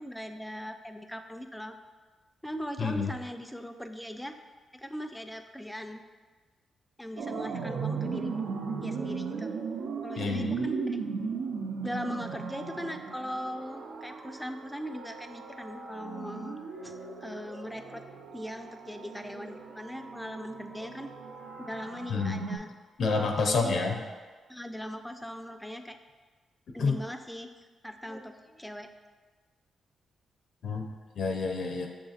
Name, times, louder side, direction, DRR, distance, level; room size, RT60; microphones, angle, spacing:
voice 1, 0.0-1.8 2.4-4.3 4.7-6.0 7.0-8.4 8.8-9.5 10.0-11.0 11.8-16.6 16.8-16.9 17.2-18.0 18.3-21.1 21.6-22.7 23.4-23.7 24.5-26.0 26.7-27.5 27.8-28.9, equal, 5° left, 6 dB, 0.3 m, -39 dB
voice 2, 2.8-3.1 10.2-10.7 22.1-22.4 23.0-24.0 26.8-27.0 30.6-31.9, left 4 dB, 70° left, 3 dB, 0.4 m, -29 dB
sound 1, 7.2-22.6, right 5 dB, 75° right, 0.4 m, -37 dB
6.8 x 2.7 x 2.4 m, 1.4 s
cardioid pair, 75°, 0 cm